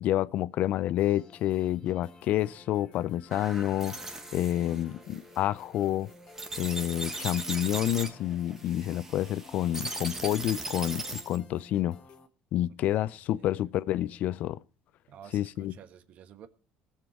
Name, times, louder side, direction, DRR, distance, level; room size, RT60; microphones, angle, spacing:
voice 1, 0.0-4.0 4.3-6.1 6.6-12.0 12.5-14.6 15.3-15.7, left 13 dB, 60° left, 0.5 m, -29 dB
sound 1, 1.0-12.3, left 2 dB, 35° left, 1.6 m, -53 dB
sound 2, 3.3-11.4, right 2 dB, 15° right, 1.6 m, -39 dB
voice 2, 12.7-14.2 15.1-16.5, right 9 dB, 50° right, 1.3 m, -53 dB
20.0 x 7.5 x 4.5 m
cardioid pair, 130°, 3 cm